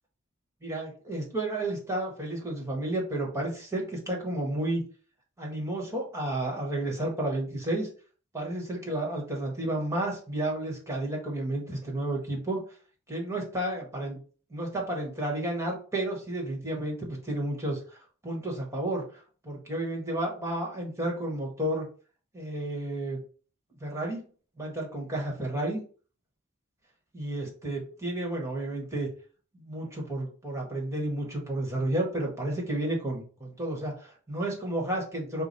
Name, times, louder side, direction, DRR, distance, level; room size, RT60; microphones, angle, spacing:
voice 1, 0.6-4.8 5.4-7.9 8.3-12.6 13.1-14.2 14.5-18.0 18.2-21.9 22.3-23.2 23.8-24.2 24.6-25.8 27.1-29.1 29.5-35.4, right 1 dB, 15° right, -1 dB, 1.4 m, -31 dB
5.0 x 2.3 x 4.1 m, 0.39 s
head